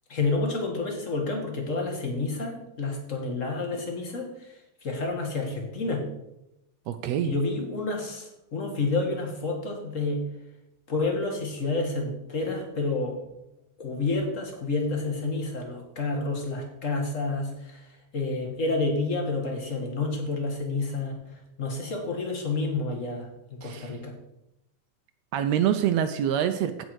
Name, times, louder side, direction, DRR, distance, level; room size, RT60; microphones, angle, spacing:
voice 1, 0.1-6.1 7.2-10.2 10.9-13.2 13.8-24.2, left 3 dB, 30° left, 2 dB, 1.7 m, -29 dB
voice 2, 6.9-7.3 23.6-23.9 25.3-26.8, right 10 dB, 75° right, 9 dB, 1.6 m, -26 dB
15.5 x 5.4 x 4.7 m, 0.86 s
omnidirectional pair, 3.4 m